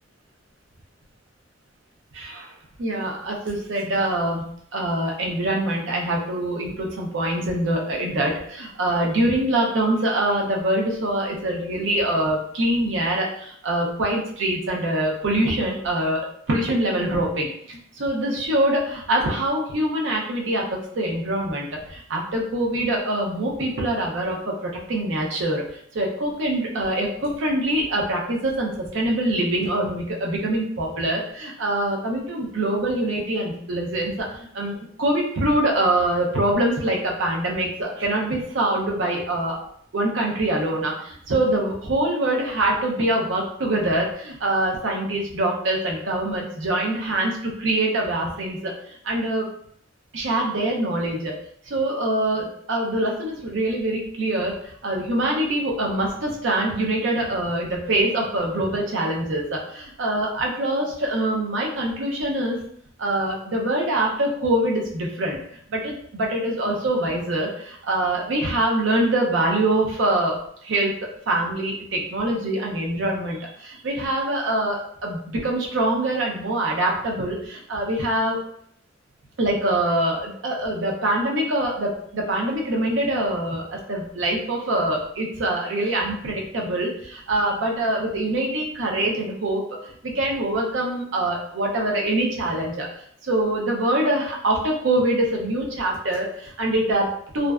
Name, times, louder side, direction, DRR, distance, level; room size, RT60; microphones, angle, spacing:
voice 1, 2.1-4.5 4.7-39.6 39.9-48.7 49.0-49.5 50.1-51.4 51.7-62.6 63.0-65.4 65.7-71.0 71.3-78.4 79.4-92.9 93.2-97.5, right 1 dB, 70° right, -1 dB, 0.5 m, -24 dB
2.5 x 2.1 x 2.3 m, 0.67 s
head